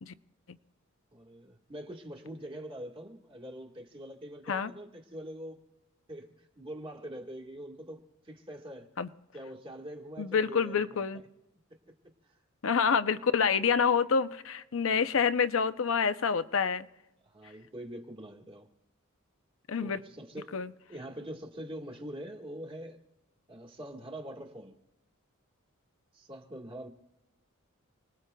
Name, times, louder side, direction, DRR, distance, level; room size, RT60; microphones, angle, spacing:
voice 1, 1.1-5.6 6.1-8.9 9.3-11.0 12.9-13.1 15.1-15.3 17.2-18.7 19.8-20.6 20.9-23.0 23.5-24.8 26.1-26.9, right 1 dB, 25° right, 1.5 m, -44 dB
voice 2, 10.2-11.2 12.6-16.9 19.7-20.0 20.5-20.7, left 6 dB, 65° left, 0.6 m, -27 dB
29.5 x 19.5 x 2.3 m
head